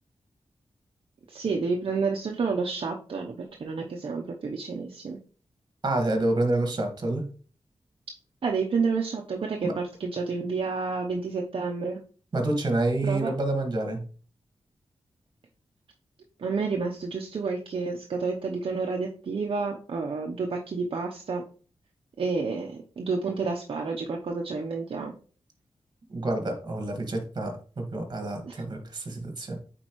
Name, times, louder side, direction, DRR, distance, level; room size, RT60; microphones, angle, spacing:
voice 1, 1.3-5.2 8.4-12.0 13.0-13.3 16.4-21.4 22.2-25.1 28.4-28.5, right 4 dB, 60° right, 1 dB, 0.8 m, -30 dB
voice 2, 5.8-7.2 9.6-9.7 12.3-14.0 26.1-29.6, right 2 dB, 40° right, 4 dB, 1.7 m, -28 dB
8.6 x 4.4 x 3.1 m, 0.41 s
wide cardioid pair, 100°, 10 cm